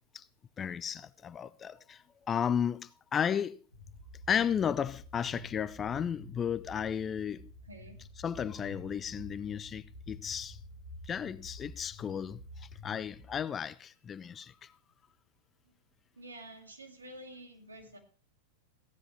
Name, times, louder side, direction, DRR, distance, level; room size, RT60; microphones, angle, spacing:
voice 1, 0.6-3.6 4.3-7.5 8.2-10.6 11.1-14.7, left 8 dB, 25° left, 0.4 m, -34 dB
sound 1, 3.7-13.4, left 2 dB, 75° left, 1.8 m, -49 dB
voice 2, 7.6-8.0 16.2-18.0, right 1 dB, 75° right, 2.1 m, -49 dB
15.0 x 10.0 x 3.2 m
figure-of-eight pair, 90°, 0 cm